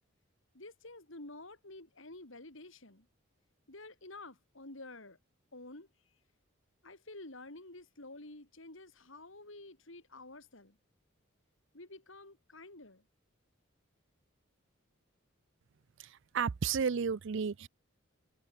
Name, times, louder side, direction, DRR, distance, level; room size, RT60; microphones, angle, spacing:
voice 1, 0.5-3.1 3.7-5.2 5.5-5.9 6.8-10.8 11.7-13.0, left 2 dB, 65° left, 4.0 m, -50 dB
voice 2, 16.0-17.7, right 6 dB, 60° right, 0.5 m, -33 dB
head